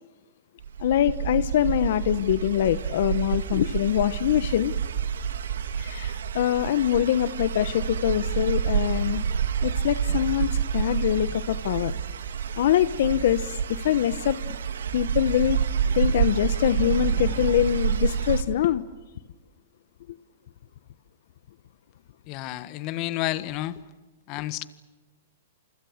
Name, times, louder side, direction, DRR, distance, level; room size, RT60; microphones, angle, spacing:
sound 1, 0.6-18.4, right 7 dB, 80° right, 2.6 m, -28 dB
voice 1, 0.8-4.7 5.7-9.2 9.6-11.9 12.6-14.6 14.9-15.6 15.9-18.8, left 11 dB, 65° left, 14 dB, 1.0 m, -24 dB
sound 2, 16.0-18.6, left 3 dB, 15° left, 4.3 m, -45 dB
voice 2, 22.3-23.8 24.3-24.7, left 15 dB, 40° left, 14 dB, 1.5 m, -30 dB
28.0 x 26.0 x 6.6 m, 1.2 s
hypercardioid pair, 140°, 0 cm